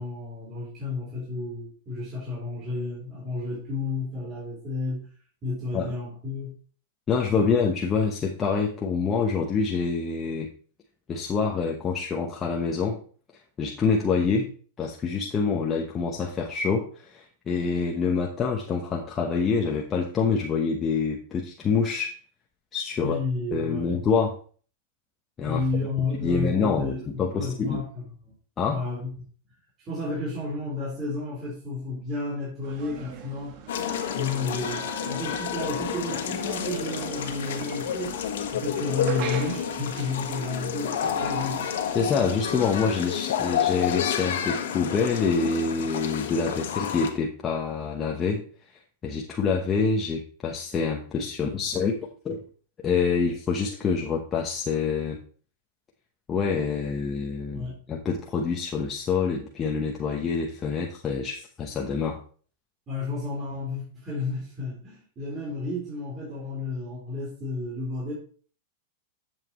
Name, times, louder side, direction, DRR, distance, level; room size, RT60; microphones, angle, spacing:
voice 1, 0.0-5.1 5.4-6.5 23.0-24.0 25.4-28.4 28.7-29.1 29.8-33.6 34.1-38.2 38.5-41.6 57.5-57.8 62.9-68.1, left 3 dB, 25° right, -5 dB, 4.1 m, -32 dB
voice 2, 7.1-10.5 11.1-13.0 13.6-14.5 14.8-22.1 22.7-23.2 23.5-24.4 25.4-25.6 26.2-27.8 28.6-28.9 41.9-48.4 49.0-52.4 52.8-55.2 56.3-62.2, left 5 dB, 20° left, 0 dB, 1.0 m, -26 dB
sound 1, 32.6-42.9, right 7 dB, 45° right, 1.4 m, -42 dB
sound 2, 33.7-47.1, left 8 dB, 80° left, 1.4 m, -30 dB
11.0 x 7.3 x 3.1 m, 0.43 s
supercardioid pair, 140°, 0 cm